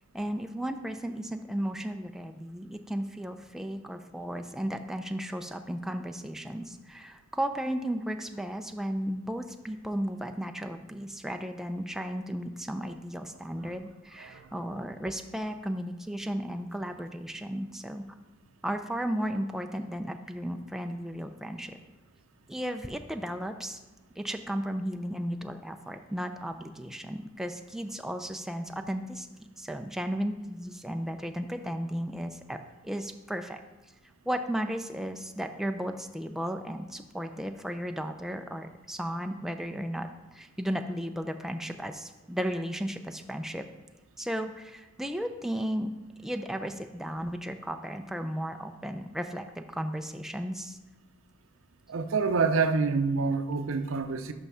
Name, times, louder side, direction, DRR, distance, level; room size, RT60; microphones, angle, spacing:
voice 1, 0.1-18.0 18.6-21.7 22.5-23.8 24.2-32.6 32.8-33.6 34.3-43.6 44.2-45.9 46.2-50.8, equal, ahead, 6 dB, 0.3 m, -34 dB
voice 2, 51.9-54.3, right 4 dB, 80° right, 10 dB, 0.5 m, -27 dB
5.8 x 5.4 x 5.5 m, 1.2 s
head